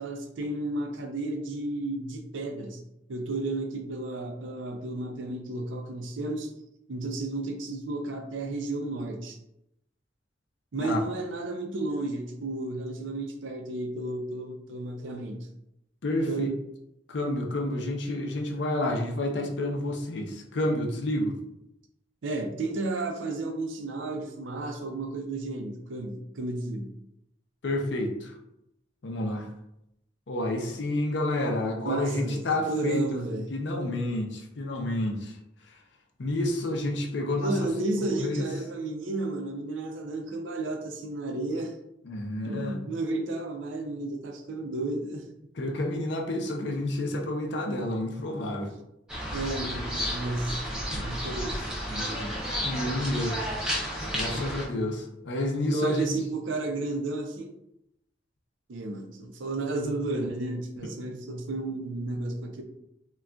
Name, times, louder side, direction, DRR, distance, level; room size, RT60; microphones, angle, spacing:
voice 1, 0.0-2.8 3.1-6.5 6.9-9.4 10.7-15.5 16.3-16.6 22.2-26.9 31.9-33.5 37.4-41.7 42.4-45.3 49.3-52.4 53.9-54.5 55.7-57.5 58.7-62.6, right 2 dB, 85° right, 4 dB, 0.5 m, -32 dB
voice 2, 16.0-16.5 17.1-21.4 27.6-28.3 29.0-29.5 30.3-33.1 33.5-35.4 35.6-35.8 36.2-37.7 38.0-38.5 42.0-42.8 45.5-48.7 52.6-53.4 54.1-56.1, left 1 dB, 65° left, 2 dB, 0.5 m, -29 dB
sound 1, 49.1-54.6, equal, 5° right, 0.6 m, -32 dB
3.7 x 2.3 x 2.2 m, 0.82 s
head